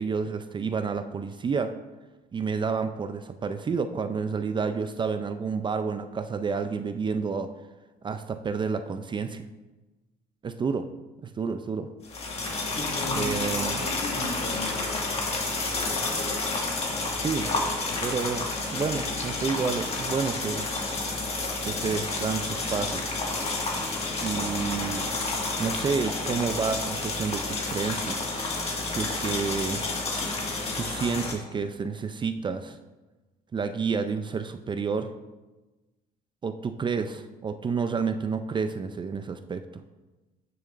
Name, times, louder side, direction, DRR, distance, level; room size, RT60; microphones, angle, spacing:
voice 1, 0.0-1.8 2.3-7.5 8.0-9.5 10.4-10.9 11.2-11.9 13.1-13.9 17.1-17.5 18.0-20.7 21.6-23.2 24.2-25.1 25.6-28.3 28.9-29.8 30.8-32.8 33.5-35.1 36.4-39.8, right 5 dB, 30° right, 9 dB, 0.4 m, -30 dB
sound 1, 12.0-31.3, left 3 dB, 40° left, 1.7 m, -30 dB
voice 2, 12.7-14.9, left 1 dB, 60° left, -2 dB, 2.4 m, -36 dB
12.5 x 6.8 x 2.5 m, 1.1 s
cardioid pair, 110°, 17 cm